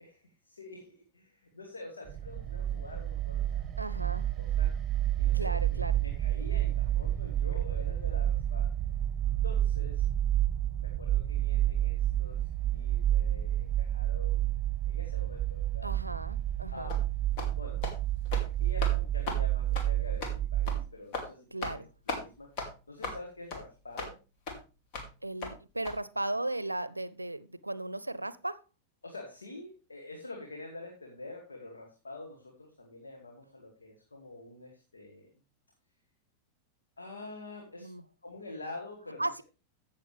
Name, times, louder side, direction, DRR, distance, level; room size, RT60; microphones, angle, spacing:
voice 1, 0.0-3.7 4.4-4.7 5.2-8.7 9.3-10.1 10.8-14.5 14.9-15.9 16.7-16.9 17.3-17.8 18.6-21.5 21.7-22.5 22.9-24.2 29.0-35.3 37.0-37.9 38.2-39.4, left 2 dB, 75° left, 2.2 m, -46 dB
sound 1, 2.1-20.8, right 12 dB, 20° right, 1.3 m, -30 dB
voice 2, 3.8-4.3 5.3-6.0 15.8-17.0 21.5-21.9 25.2-28.6 37.8-38.0 39.2-39.4, right 1 dB, 85° right, 0.6 m, -36 dB
sound 2, 16.9-17.0 17.4-17.5 17.8-18.0 18.3-18.5 18.8-18.9 19.3-19.4 19.7-19.9 20.2-20.3 20.7-20.8 21.1-21.3 21.6-21.8 22.1-22.2 22.6-22.7 23.0-23.2 23.5-23.6 24.0-24.1 24.5-24.6 24.9-25.1 25.4-25.5 25.8-25.9, left 3 dB, 45° left, 2.7 m, -36 dB
15.0 x 7.0 x 3.4 m
figure-of-eight pair, 90°, 0 cm